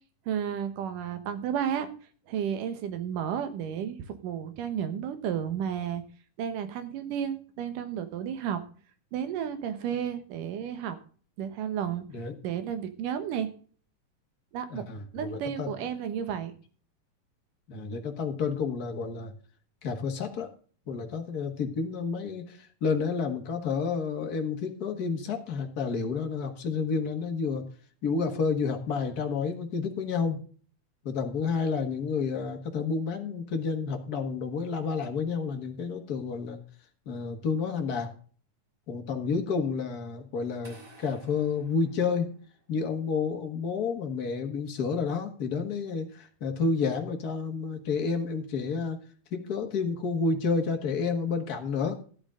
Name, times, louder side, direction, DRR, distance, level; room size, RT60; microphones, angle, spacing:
voice 1, 0.3-1.9 2.3-6.0 6.4-8.6 9.1-11.0 11.4-12.1 12.4-13.5 14.5-14.9 15.1-16.5, right 9 dB, 75° right, 10 dB, 2.8 m, -32 dB
voice 2, 14.7-15.9 17.7-19.3 19.8-20.5 20.9-27.6 28.0-30.4 31.0-36.6 37.0-38.1 38.9-42.4 42.7-49.0 49.3-52.0, left 5 dB, 45° left, 5 dB, 1.2 m, -30 dB
sound 1, 40.6-42.7, right 2 dB, 40° right, 7.9 m, -54 dB
13.5 x 10.0 x 3.8 m, 0.43 s
omnidirectional pair, 3.8 m